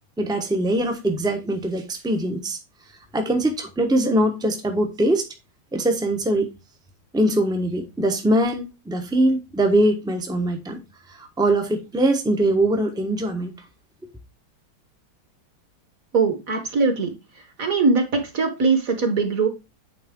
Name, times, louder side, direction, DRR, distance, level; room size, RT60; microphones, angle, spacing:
voice 1, 0.2-2.6 3.1-5.2 5.7-6.5 7.1-10.8 11.1-13.5, right 1 dB, 5° right, 0.4 m, -22 dB
voice 2, 16.1-17.1 17.6-19.5, right 4 dB, 50° right, 1.3 m, -21 dB
8.8 x 3.8 x 3.6 m
omnidirectional pair, 2.2 m